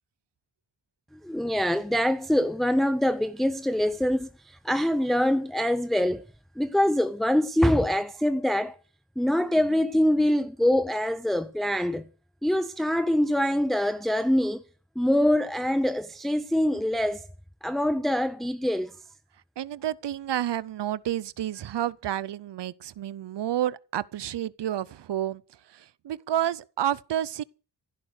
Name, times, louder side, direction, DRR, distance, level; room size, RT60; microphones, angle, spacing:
voice 1, 1.2-6.2 6.6-8.8 9.2-12.1 12.4-14.6 15.0-17.3 17.6-19.0, left 1 dB, ahead, 0.7 m, -24 dB
voice 2, 19.6-25.4 26.0-27.4, right 11 dB, 80° right, 0.6 m, -30 dB
15.5 x 10.5 x 6.5 m
cardioid pair, 70°, 41 cm